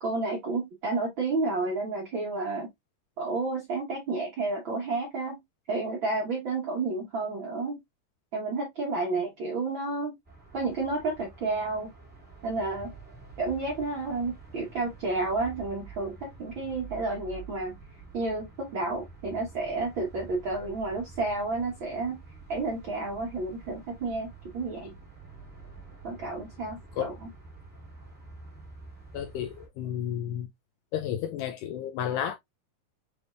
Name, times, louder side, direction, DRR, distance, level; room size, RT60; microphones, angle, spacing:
voice 1, 0.0-2.7 3.2-5.4 5.7-7.8 8.3-10.1 10.5-11.9 12.4-12.9 13.4-17.8 18.1-22.2 22.5-24.9 26.0-27.3, right 3 dB, 60° right, 1.3 m, -31 dB
sound 1, 10.2-29.7, right 4 dB, 5° right, 1.1 m, -48 dB
voice 2, 29.1-30.5 30.9-32.3, left 10 dB, 80° left, 2.0 m, -32 dB
6.2 x 3.5 x 2.4 m
omnidirectional pair, 3.9 m